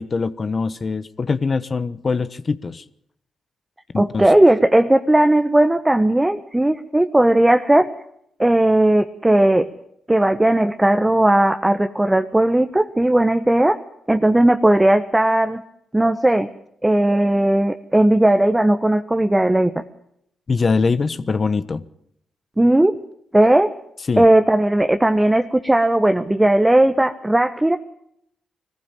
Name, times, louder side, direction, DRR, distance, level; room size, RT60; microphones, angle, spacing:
voice 1, 0.0-2.8 3.9-4.2 20.5-21.9 24.1-24.3, left 4 dB, 45° left, 1.1 m, -22 dB
voice 2, 4.0-7.9 8.4-9.7 10.1-13.8 14.1-15.6 15.9-16.5 16.8-19.7 22.6-23.0 23.3-23.7 24.2-27.8, right 1 dB, 15° right, 1.3 m, -16 dB
21.5 x 15.0 x 9.0 m
supercardioid pair, 45°, 0 cm